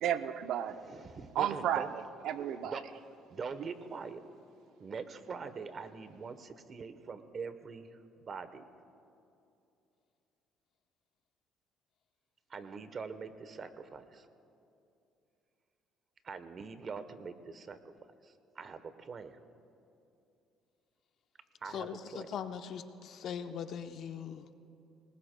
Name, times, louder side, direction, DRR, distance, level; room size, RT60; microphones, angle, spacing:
voice 1, 0.0-0.8 1.4-2.8, right 10 dB, 70° right, 10 dB, 0.6 m, -33 dB
voice 2, 0.7-1.9 2.6-2.8 3.3-4.2 4.8-7.9 8.2-8.6 12.5-14.3 16.2-17.8 18.2-19.4 21.6-22.3, right 5 dB, 40° right, 11 dB, 0.9 m, -43 dB
voice 3, 21.7-24.6, left 8 dB, 60° left, 8 dB, 0.8 m, -41 dB
25.5 x 20.0 x 2.2 m, 2.7 s
cardioid pair, 100°, 0 cm